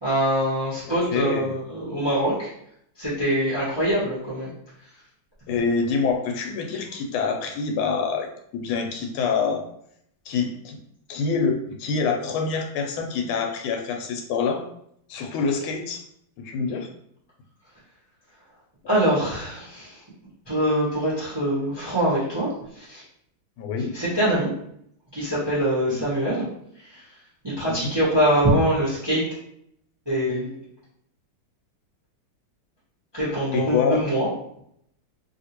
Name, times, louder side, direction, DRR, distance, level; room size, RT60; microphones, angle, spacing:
voice 1, 0.0-2.5 3.0-4.5 18.9-20.0 20.5-22.5 22.7-23.0 23.9-24.5 25.1-26.4 27.4-29.2 30.1-30.6 33.1-34.3, right 1 dB, 20° right, -9 dB, 0.7 m, -23 dB
voice 2, 1.1-1.6 5.5-8.3 8.5-9.6 10.3-10.8 11.1-14.6 15.1-16.0 16.4-16.9 23.6-23.9 25.9-26.0 27.7-28.0 33.5-34.0, left 5 dB, 85° left, 3 dB, 1.4 m, -26 dB
3.0 x 2.8 x 2.8 m, 0.71 s
omnidirectional pair, 2.2 m